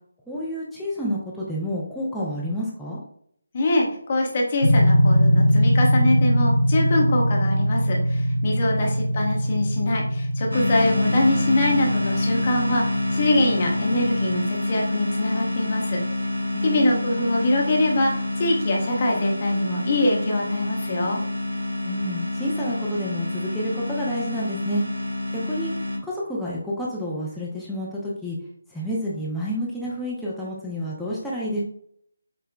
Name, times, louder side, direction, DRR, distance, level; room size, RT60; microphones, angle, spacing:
voice 1, 0.3-3.0 8.8-8.9 16.5-17.1 21.8-24.8 25.3-25.7 26.0-28.4 28.7-31.6, equal, ahead, -8 dB, 0.5 m, -29 dB
voice 2, 3.5-16.0 16.6-18.1 18.4-21.2, left 1 dB, 30° left, 0 dB, 0.7 m, -24 dB
sound 1, 4.6-14.4, equal, 75° left, 1.0 m, -22 dB
sound 2, 10.5-26.0, left 2 dB, 70° right, 1.0 m, -27 dB
5.4 x 2.1 x 2.2 m, 0.65 s
figure-of-eight pair, 155°, 0 cm